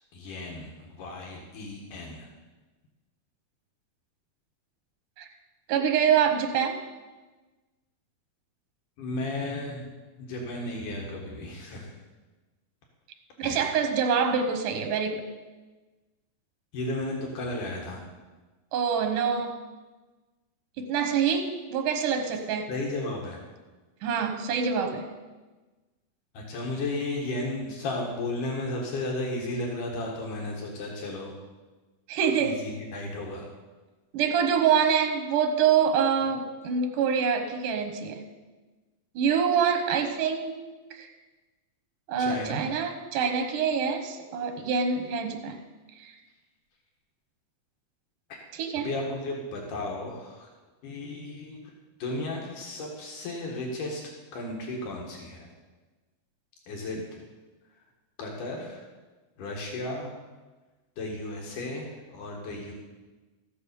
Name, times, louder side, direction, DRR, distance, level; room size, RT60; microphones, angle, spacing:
voice 1, 0.1-2.3 9.0-9.9 10.2-11.9 13.4-13.7 16.7-18.0 22.7-23.4 26.3-31.3 32.4-33.5 42.2-42.6 48.3-48.4 48.8-50.5 50.8-51.6 52.0-54.0 54.3-55.5 56.7-57.2 58.2-58.8 59.4-60.1 61.0-62.7, left 2 dB, 80° left, -1 dB, 3.2 m, -34 dB
voice 2, 5.7-6.8 13.4-15.3 18.7-19.6 20.8-22.7 24.0-25.1 32.1-32.6 34.1-38.2 39.2-40.6 40.9-41.1 42.1-45.6 46.0-46.2 48.5-48.9, right 7 dB, 80° right, 5 dB, 2.7 m, -25 dB
14.5 x 7.0 x 6.9 m, 1.2 s
omnidirectional pair, 3.6 m